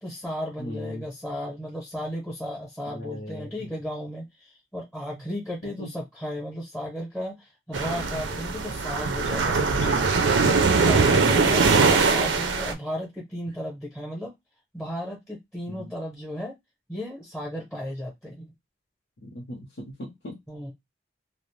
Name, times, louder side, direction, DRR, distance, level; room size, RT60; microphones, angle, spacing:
voice 1, 0.0-10.1 10.6-14.3 14.7-16.5 16.9-18.5 20.5-20.7, equal, 5° left, -4 dB, 0.7 m, -34 dB
voice 2, 0.6-1.0 2.9-3.7 5.8-5.9 11.0-11.8 15.7-15.9 19.2-20.4, left 1 dB, 75° left, -3 dB, 0.8 m, -38 dB
sound 1, 7.7-12.7, right 4 dB, 85° right, 0.5 m, -21 dB
2.5 x 2.0 x 3.1 m, 0.18 s
head